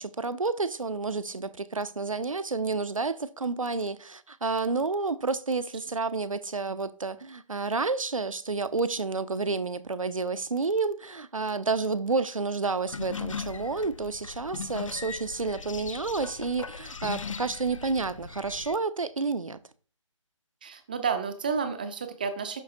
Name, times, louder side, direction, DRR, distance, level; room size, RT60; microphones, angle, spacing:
voice 1, 0.0-19.6, right 4 dB, 80° right, 0.6 m, -30 dB
sound 1, 12.9-18.8, left 5 dB, 70° left, 0.4 m, -39 dB
voice 2, 20.6-22.6, right 5 dB, 15° right, 0.5 m, -31 dB
12.0 x 4.0 x 2.6 m
figure-of-eight pair, 150°, 17 cm